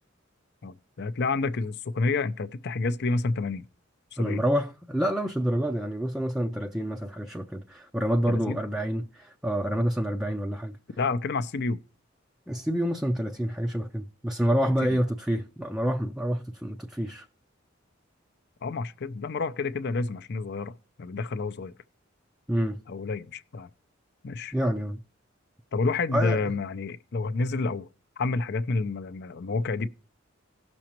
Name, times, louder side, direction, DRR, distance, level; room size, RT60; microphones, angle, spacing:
voice 1, 0.6-3.7 4.1-4.4 8.3-8.6 11.0-11.8 14.6-15.0 18.6-21.7 22.9-23.7 24.2-24.5 25.7-27.9 28.2-29.9, left 3 dB, 55° left, 0.6 m, -29 dB
voice 2, 4.2-10.7 12.5-17.3 22.5-22.8 24.5-25.0 26.1-26.4, equal, 5° right, 0.4 m, -28 dB
17.0 x 6.2 x 2.9 m
head